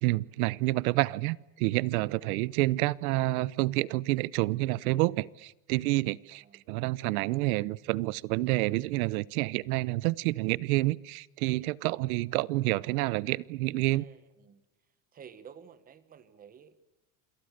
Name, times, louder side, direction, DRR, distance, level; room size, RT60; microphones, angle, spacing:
voice 1, 0.0-14.0, right 19 dB, 80° right, 22 dB, 0.9 m, -28 dB
voice 2, 6.3-6.7 11.9-12.0 13.9-14.6 15.1-16.8, right 7 dB, 20° right, 13 dB, 1.4 m, -52 dB
28.0 x 27.0 x 6.6 m, 0.97 s
cardioid pair, 180°, 42 cm